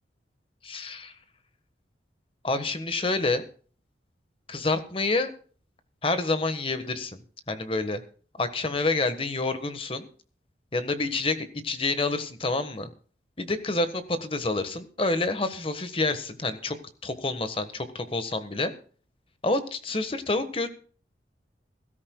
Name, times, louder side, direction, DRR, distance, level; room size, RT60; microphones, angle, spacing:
voice 1, 0.6-1.1 2.4-3.4 4.5-5.3 6.0-7.2 7.5-8.0 8.4-10.1 10.7-12.9 13.4-16.7 17.0-18.7 19.4-20.7, left 2 dB, 30° left, 10 dB, 1.4 m, -28 dB
21.5 x 13.0 x 2.3 m, 0.43 s
head